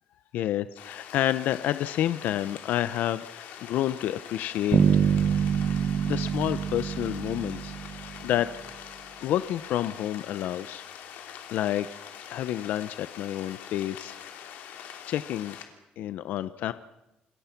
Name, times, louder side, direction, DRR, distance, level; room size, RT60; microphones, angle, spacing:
voice 1, 0.3-4.8 6.1-8.5 9.2-10.8 11.5-11.9 12.3-14.5 15.1-15.6 16.0-16.7, left 12 dB, 70° left, 13 dB, 0.8 m, -29 dB
sound 1, 0.8-15.7, left 9 dB, 90° left, 3.1 m, -44 dB
Bass guitar, 4.7-8.5, right 7 dB, 35° right, 1.0 m, -25 dB
28.5 x 21.0 x 6.0 m, 0.96 s
cardioid pair, 170°, 3 cm